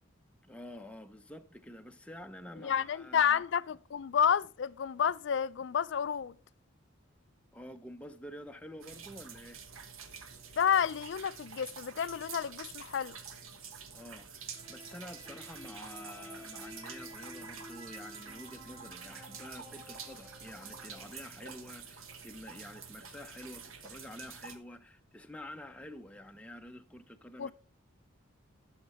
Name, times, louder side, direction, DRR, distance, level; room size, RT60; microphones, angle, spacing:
voice 1, 0.4-3.4 7.5-9.6 13.9-27.5, left 1 dB, 5° left, 0.5 m, -48 dB
voice 2, 2.6-6.3 10.6-13.2 27.4-27.5, left 8 dB, 60° left, 0.3 m, -30 dB
sound 1, 8.8-24.6, right 6 dB, 90° right, 1.2 m, -48 dB
sound 2, 14.5-21.1, left 1 dB, 35° right, 2.9 m, -51 dB
11.5 x 6.5 x 4.2 m
head